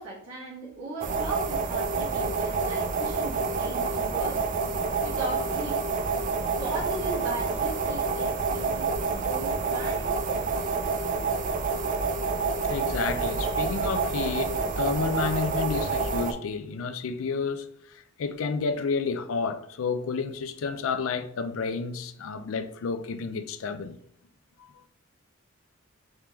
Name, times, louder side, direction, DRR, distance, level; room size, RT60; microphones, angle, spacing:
voice 1, 0.0-4.4 5.0-5.8 6.6-10.8, right 2 dB, 80° right, 1.3 m, -37 dB
sound 1, 1.0-16.3, right 4 dB, 40° right, 0.3 m, -28 dB
voice 2, 12.7-24.0 24.6-24.7, left 5 dB, 70° left, 0.4 m, -31 dB
3.5 x 3.3 x 2.9 m
head